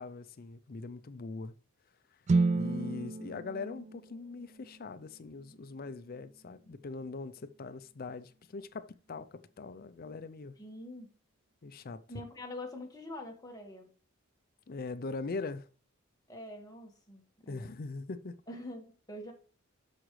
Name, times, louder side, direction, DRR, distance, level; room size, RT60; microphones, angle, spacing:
voice 1, 0.0-1.5 2.5-10.6 11.6-12.0 14.7-15.7 17.5-18.4, left 3 dB, 45° left, 0.5 m, -41 dB
sound 1, 2.3-6.3, right 3 dB, 35° right, 0.3 m, -33 dB
voice 2, 10.6-11.1 12.1-13.9 16.3-17.7 18.5-19.3, left 1 dB, 20° left, 1.6 m, -45 dB
12.5 x 4.9 x 3.2 m
head